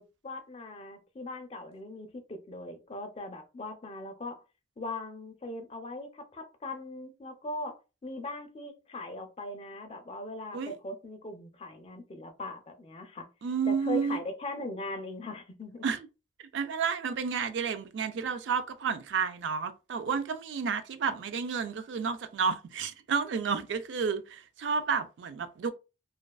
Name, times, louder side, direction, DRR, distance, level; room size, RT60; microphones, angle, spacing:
voice 1, 0.0-4.4 4.8-13.3 13.7-15.8, left 2 dB, 35° left, 0.4 m, -40 dB
voice 2, 13.4-14.2 15.8-16.1 16.5-25.7, right 6 dB, 80° right, 0.4 m, -31 dB
2.3 x 2.3 x 2.3 m
head